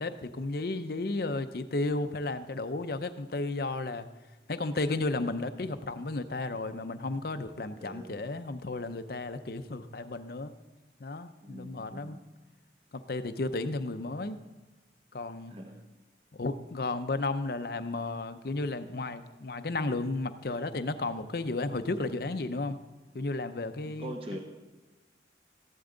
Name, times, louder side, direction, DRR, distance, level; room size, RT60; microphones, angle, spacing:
voice 1, 0.0-4.1 4.5-10.5 11.0-12.2 12.9-14.4 15.1-15.5 16.3-22.8 23.1-24.4, left 2 dB, 55° left, 10 dB, 0.6 m, -33 dB
voice 2, 7.8-8.2 11.4-12.2 15.5-15.8 23.8-24.4, right 1 dB, 30° right, 2 dB, 1.1 m, -42 dB
14.5 x 11.5 x 3.9 m, 1.2 s
head